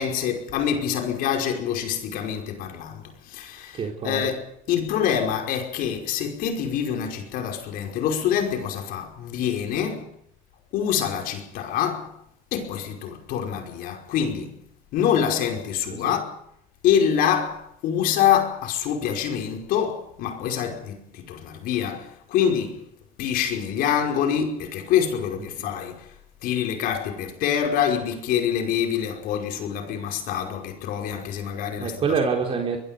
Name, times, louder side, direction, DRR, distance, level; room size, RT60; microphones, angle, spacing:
voice 1, 0.0-3.0 3.3-3.8 4.0-10.1 10.7-12.1 12.5-14.5 14.9-16.3 16.8-22.8 23.2-26.0 26.4-32.0, left 8 dB, 60° left, 5.3 m, -25 dB
voice 2, 3.7-4.3 15.9-16.1 25.6-25.7 31.8-32.8, right 5 dB, 35° right, 3.9 m, -26 dB
23.5 x 22.5 x 5.3 m
cardioid pair, 130°, 17 cm